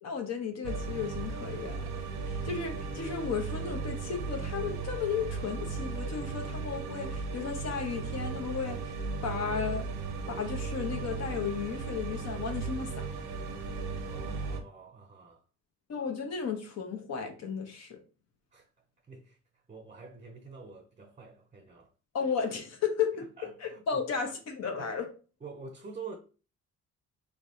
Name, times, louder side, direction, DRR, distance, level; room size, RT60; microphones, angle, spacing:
voice 1, 0.0-1.8 2.2-9.9 10.3-13.0 15.9-18.0 22.1-23.2 23.6-25.1, left 6 dB, 60° left, 0.9 m, -34 dB
sound 1, 0.6-14.6, right 4 dB, 85° right, 0.7 m, -36 dB
voice 2, 14.0-15.4 18.5-18.7 19.1-19.4 19.7-21.9 23.1-24.1 24.8-24.9 25.4-26.2, right 4 dB, 25° right, 0.6 m, -47 dB
3.3 x 3.2 x 2.7 m
cardioid pair, 90°, 30 cm